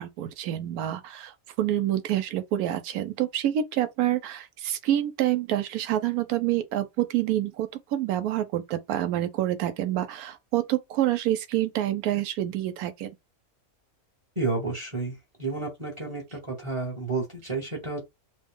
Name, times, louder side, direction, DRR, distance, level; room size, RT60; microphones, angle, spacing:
voice 1, 0.0-13.1, right 12 dB, 80° right, 1.1 m, -27 dB
voice 2, 14.4-18.1, right 3 dB, 25° right, 0.8 m, -31 dB
2.9 x 2.1 x 3.6 m
omnidirectional pair, 1.6 m